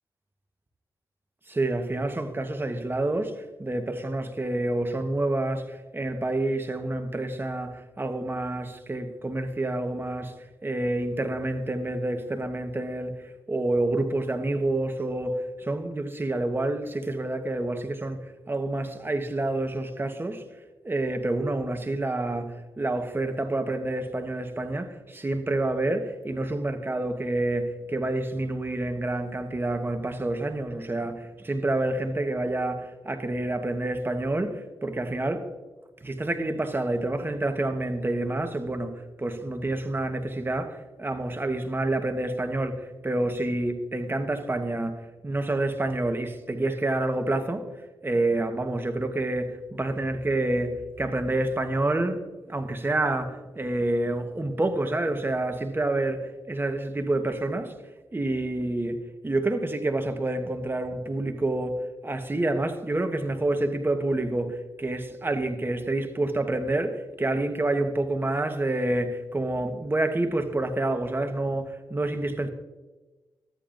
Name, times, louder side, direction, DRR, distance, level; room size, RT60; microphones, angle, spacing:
voice 1, 1.5-10.3 10.6-20.4 20.8-35.5 36.0-47.7 48.0-57.7 58.1-72.5, right 2 dB, 25° right, 1.1 m, -28 dB
13.5 x 8.7 x 2.6 m
cardioid pair, 55°, 9 cm